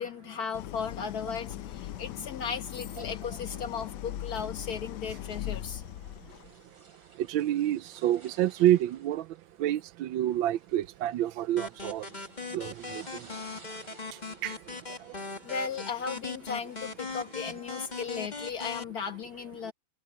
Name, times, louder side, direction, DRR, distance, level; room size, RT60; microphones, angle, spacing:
voice 1, 0.0-5.8 15.4-19.7, left 6 dB, 50° left, 2.0 m, -36 dB
Idling, 0.5-6.6, left 13 dB, 75° left, 1.1 m, -40 dB
sound 1, 6.3-17.6, right 3 dB, 65° right, 5.5 m, -58 dB
voice 2, 7.2-9.3 9.6-12.1 12.5-13.3 14.1-14.6 15.1-15.2, right 13 dB, 85° right, 1.4 m, -28 dB
sound 2, 11.6-18.8, left 4 dB, 25° left, 1.8 m, -40 dB
omnidirectional pair, 2.1 m